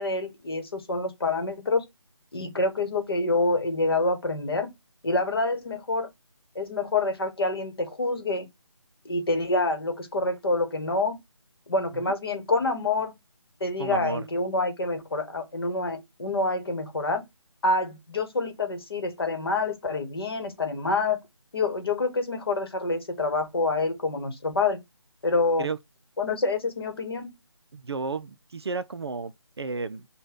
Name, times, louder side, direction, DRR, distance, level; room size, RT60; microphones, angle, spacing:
voice 1, 0.0-1.8 2.3-4.7 5.0-6.1 6.5-8.5 9.0-11.2 11.7-13.1 13.6-17.3 17.6-21.2 21.5-24.8 25.2-25.7 26.2-27.3, left 3 dB, 50° left, 1.1 m, -27 dB
voice 2, 13.8-14.2 25.6-25.8 27.7-30.1, right 4 dB, 55° right, 0.4 m, -33 dB
5.3 x 2.2 x 3.4 m
figure-of-eight pair, 155°, 16 cm